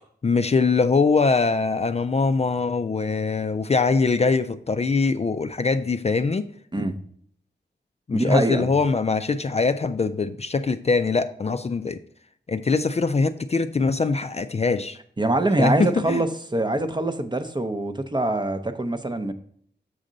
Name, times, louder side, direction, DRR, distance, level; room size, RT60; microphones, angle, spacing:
voice 1, 0.2-6.5 8.1-12.0 12.5-15.0 15.6-16.2, left 4 dB, 35° left, 10 dB, 0.4 m, -22 dB
voice 2, 8.1-8.7 15.2-19.3, right 2 dB, 25° right, 9 dB, 0.6 m, -24 dB
6.5 x 6.3 x 3.8 m, 0.62 s
wide cardioid pair, 85°, 18 cm